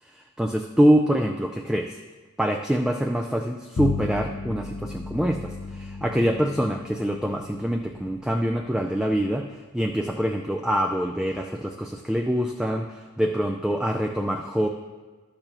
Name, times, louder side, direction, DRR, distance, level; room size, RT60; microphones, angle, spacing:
voice 1, 0.1-2.0 2.4-14.7, equal, 5° right, 2 dB, 0.3 m, -25 dB
Bowed string instrument, 3.8-9.4, left 4 dB, 75° left, 0.6 m, -35 dB
12.0 x 6.7 x 3.0 m, 1.3 s
head